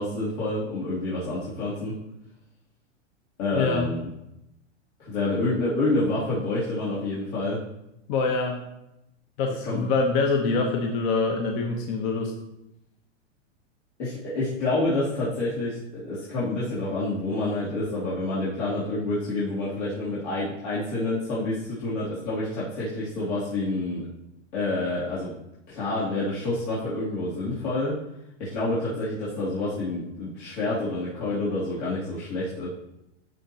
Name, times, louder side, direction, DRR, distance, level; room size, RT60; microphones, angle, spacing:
voice 1, 0.0-1.9 3.4-4.1 5.0-7.6 9.6-9.9 10.7-10.8 14.0-24.0 24.5-25.3 25.7-28.0 28.4-32.7, left 2 dB, 70° left, -9 dB, 3.2 m, -28 dB
voice 2, 3.5-3.9 8.1-8.6 9.4-12.3, left 4 dB, 45° left, 2 dB, 1.2 m, -25 dB
13.0 x 5.2 x 3.0 m, 0.86 s
hypercardioid pair, 125°, 36 cm